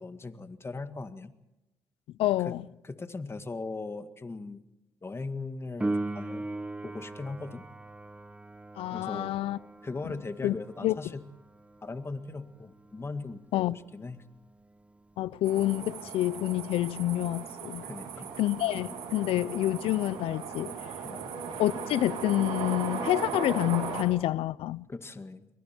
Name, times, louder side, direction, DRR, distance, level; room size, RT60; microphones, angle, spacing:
voice 1, 0.0-1.3 2.4-2.5 2.8-4.6 5.0-6.5 6.8-7.7 8.9-9.3 9.8-11.2 11.8-14.2 17.8-18.3 21.0-21.3 24.9-25.5, left 3 dB, 25° left, 1.9 m, -39 dB
voice 2, 2.2-2.6 8.8-9.6 10.4-10.6 10.8-10.9 13.5-13.8 15.2-17.8 18.4-20.7 21.6-24.9, left 15 dB, 80° left, 0.6 m, -28 dB
Piano, 5.8-16.2 23.7-23.8, right 2 dB, 15° right, 1.2 m, -40 dB
sound 1, 15.4-24.0, right 6 dB, 85° right, 3.9 m, -37 dB
28.0 x 22.5 x 4.5 m
cardioid pair, 75°, 9 cm